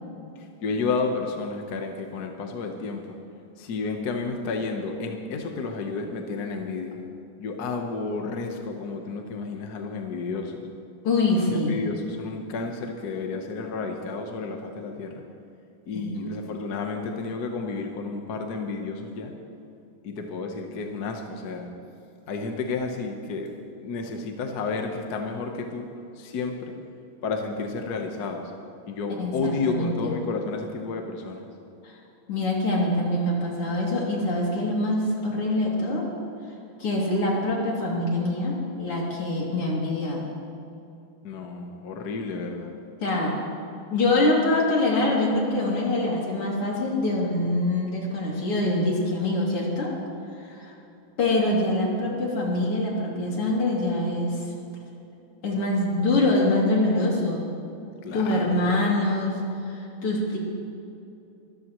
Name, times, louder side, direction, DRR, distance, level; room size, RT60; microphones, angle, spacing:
voice 1, 0.4-3.2 3.6-7.0 7.4-10.7 11.3-15.2 15.9-19.4 20.0-21.8 22.3-26.8 27.2-28.5 28.9-31.5 41.2-42.8 58.0-58.9, left 4 dB, 50° left, 3 dB, 1.5 m, -31 dB
voice 2, 11.0-11.7 15.9-16.1 29.2-30.1 31.8-32.0 32.3-36.0 36.8-40.3 43.0-43.3 43.9-49.9 50.4-50.7 51.2-54.5 55.4-57.5 58.1-59.4 59.7-60.4, left 2 dB, 85° left, -3 dB, 3.8 m, -24 dB
24.0 x 14.0 x 3.1 m, 2.7 s
omnidirectional pair, 2.4 m